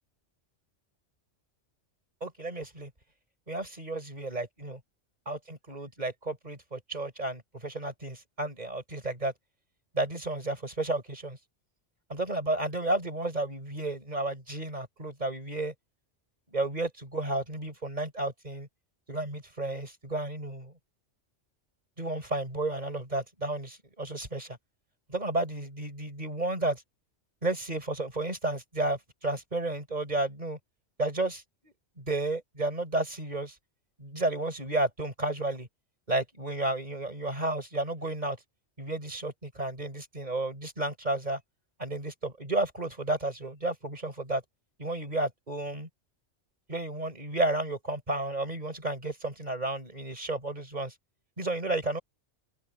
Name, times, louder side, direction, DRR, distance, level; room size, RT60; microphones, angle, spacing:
voice 1, 2.2-2.9 3.5-4.8 5.3-9.3 9.9-11.4 12.1-15.7 16.5-18.7 19.1-20.7 22.0-24.6 25.1-26.8 27.4-30.6 31.0-33.6 34.0-35.7 36.1-38.4 38.8-41.4 41.8-44.4 44.8-45.9 46.7-50.9 51.4-52.0, right 2 dB, 35° right, 5.6 m, -32 dB
open air
omnidirectional pair, 1.2 m